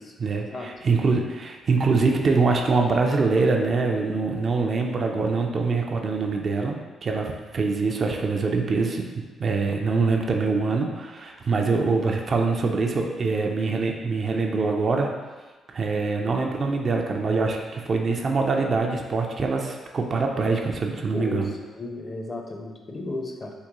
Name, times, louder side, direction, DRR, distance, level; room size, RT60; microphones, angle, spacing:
voice 1, 0.2-9.1 9.4-15.1 15.7-21.5, right 4 dB, 50° right, 2 dB, 0.4 m, -24 dB
voice 2, 21.1-23.5, left 2 dB, 35° left, 1 dB, 0.5 m, -34 dB
3.6 x 2.2 x 2.9 m, 1.3 s
cardioid pair, 80°, 0 cm